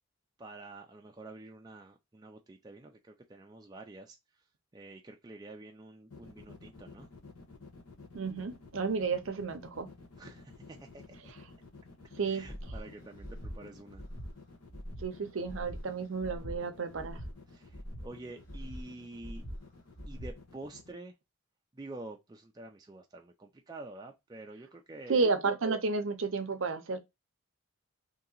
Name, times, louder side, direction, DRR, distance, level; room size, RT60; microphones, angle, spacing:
voice 1, 0.4-4.2 4.7-7.1 10.2-11.3 12.2-14.0 17.5-19.4 20.1-21.1 21.7-25.3, right 2 dB, 20° right, 0.4 m, -48 dB
sound 1, 6.1-20.9, left 3 dB, 85° left, 1.0 m, -52 dB
voice 2, 8.1-9.9 12.2-12.5 15.0-17.2 25.1-27.0, right 4 dB, 60° right, 0.6 m, -32 dB
Breathing, 12.4-12.8 13.2-13.5 13.9-14.3 14.7-15.0 15.4-15.8 16.2-16.5 16.9-17.3 17.7-18.1 18.4-18.8 19.2-19.6 19.9-20.3, equal, 15° left, 1.5 m, -42 dB
2.8 x 2.8 x 3.8 m
head